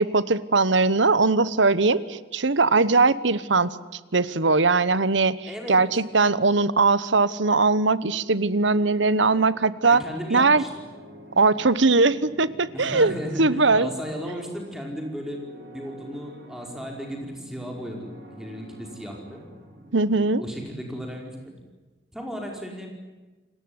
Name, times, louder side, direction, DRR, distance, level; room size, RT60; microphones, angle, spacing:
voice 1, 0.0-3.8 4.1-10.0 10.3-10.6 11.4-13.1 13.4-13.9 19.9-20.4, right 3 dB, 80° right, 17 dB, 1.1 m, -20 dB
voice 2, 5.5-5.8 9.2-9.5 9.8-10.7 12.7-15.4 15.7-19.4 20.4-21.5 22.1-22.9, equal, ahead, 1 dB, 5.0 m, -35 dB
sound 1, 10.7-20.3, equal, 60° right, 5.5 m, -46 dB
29.0 x 19.5 x 9.7 m, 1.2 s
head